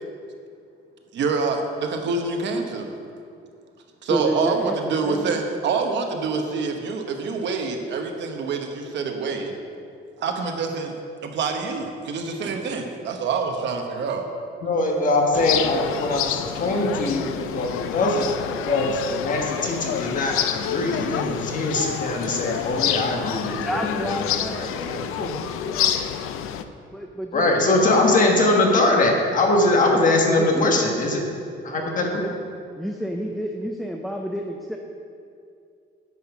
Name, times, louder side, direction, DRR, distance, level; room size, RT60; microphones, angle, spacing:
voice 1, 1.1-2.9 4.0-9.5 10.2-10.9 11.2-14.3, right 4 dB, 60° right, 4 dB, 1.0 m, -26 dB
voice 2, 4.1-5.4 23.6-25.4 25.7-26.0 26.9-28.9 30.4-31.0 32.1-32.3 32.8-34.8, equal, ahead, 2 dB, 0.4 m, -31 dB
voice 3, 14.6-18.3 18.6-25.0 27.3-31.2 31.6-32.2, left 2 dB, 40° left, 1 dB, 1.3 m, -22 dB
sound 1, 15.3-26.6, left 9 dB, 90° left, 0.5 m, -28 dB
9.3 x 5.8 x 5.9 m, 2.4 s
cardioid pair, 170°, 21 cm